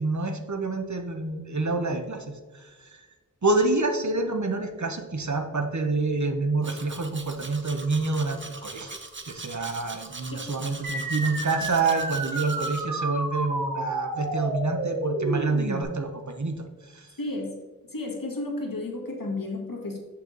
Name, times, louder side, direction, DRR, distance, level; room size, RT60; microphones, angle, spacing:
voice 1, 0.0-3.1 3.4-9.0 9.3-17.2, right 3 dB, 60° right, 5 dB, 0.9 m, -28 dB
Domestic sounds home sounds, 6.6-12.8, right 3 dB, 35° right, 0.8 m, -41 dB
sound 1, 10.8-15.8, right 2 dB, 90° right, 1.2 m, -30 dB
voice 2, 17.2-17.6 17.8-20.0, left 2 dB, 80° left, 0 dB, 1.5 m, -32 dB
7.6 x 5.7 x 3.9 m, 1.3 s
wide cardioid pair, 45°, 33 cm